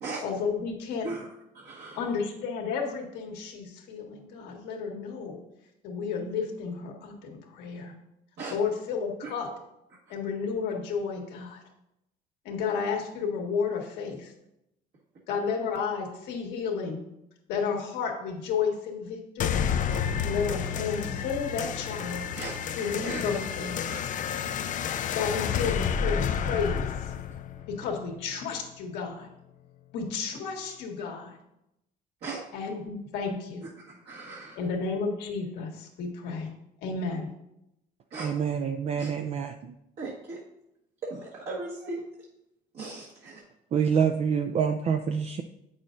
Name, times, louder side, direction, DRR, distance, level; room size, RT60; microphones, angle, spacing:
voice 1, 0.2-1.1 2.0-5.4 5.8-7.9 8.5-9.5 10.1-11.6 12.4-14.3 15.3-17.0 17.5-19.7 20.2-22.2 22.7-23.9 25.1-27.1 27.8-29.3 29.9-31.4 32.5-33.6 34.5-36.5 36.8-37.3, left 5 dB, 90° left, 1.5 m, -32 dB
voice 2, 1.5-2.0 8.4-8.6 9.2-9.3 22.4-22.6 23.0-23.2 23.8-24.0 32.2-32.4 34.0-34.6 38.1-38.5 39.0-39.1 40.0-40.4 41.0-42.0 42.7-43.4, right 3 dB, 65° right, 1.6 m, -37 dB
sound 1, 19.4-28.4, left 7 dB, 50° left, 0.4 m, -30 dB
voice 3, 38.2-39.7 43.7-45.4, right 7 dB, 40° right, 0.4 m, -27 dB
8.3 x 6.2 x 2.6 m
cardioid pair, 110°, 17 cm